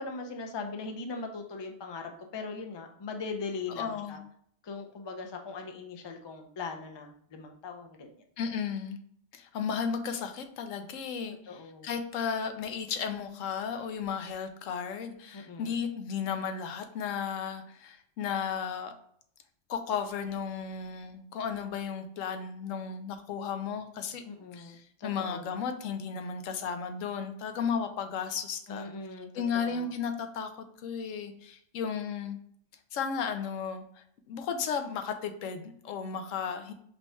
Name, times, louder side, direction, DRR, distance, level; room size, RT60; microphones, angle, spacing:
voice 1, 0.0-4.2 4.6-8.1 11.5-11.9 15.3-15.7 24.2-25.5 28.7-29.9, left 4 dB, 40° left, 4 dB, 0.3 m, -40 dB
voice 2, 3.8-4.2 8.4-9.0 9.3-18.9 19.7-24.2 24.5-28.9 29.3-32.4 32.9-36.7, left 6 dB, 90° left, 7 dB, 1.0 m, -34 dB
5.2 x 2.3 x 4.2 m, 0.66 s
omnidirectional pair, 1.3 m